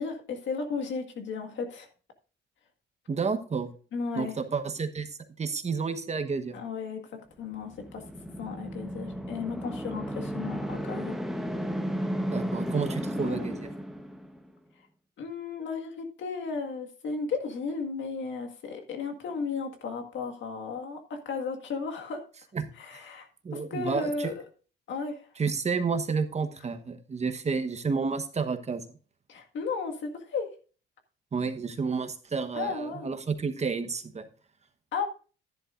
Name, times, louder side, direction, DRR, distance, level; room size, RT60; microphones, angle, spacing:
voice 1, 0.0-1.9 3.9-4.4 6.5-7.1 7.4-8.0 8.4-11.2 13.2-13.5 15.2-22.2 22.8-23.3 23.5-24.3 24.9-25.3 29.3-30.5 32.5-33.1 34.9-35.0, left 4 dB, 70° left, 4 dB, 1.8 m, -34 dB
voice 2, 3.1-3.7 4.1-6.6 12.3-13.7 22.5-23.0 23.4-24.3 25.4-28.8 31.3-34.2, right 5 dB, 35° right, 8 dB, 1.2 m, -30 dB
sound 1, 7.5-14.5, equal, ahead, 1.1 m, -34 dB
11.0 x 10.5 x 2.5 m, 0.38 s
cardioid pair, 90°, 20 cm